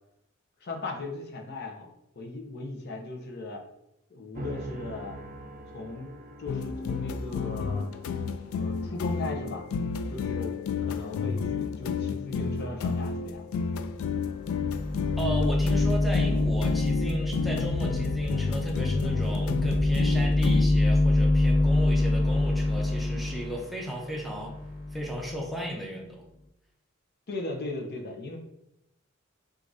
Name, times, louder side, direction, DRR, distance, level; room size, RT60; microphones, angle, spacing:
voice 1, 0.6-1.9 2.2-3.6 4.1-5.2 5.7-6.1 6.4-7.8 8.6-9.7 10.1-10.5 10.8-13.5 27.3-28.4, left 2 dB, 55° left, 2 dB, 0.6 m, -37 dB
sound 1, 4.3-12.7, right 1 dB, 40° right, 0.4 m, -46 dB
sound 2, 6.5-20.7, left 5 dB, 90° left, 0.3 m, -31 dB
sound 3, 14.0-14.1 14.4-25.5, left 2 dB, 25° left, 0.9 m, -26 dB
voice 2, 15.2-24.5 24.9-26.2, equal, ahead, -1 dB, 0.6 m, -35 dB
6.2 x 2.5 x 2.6 m, 0.84 s
head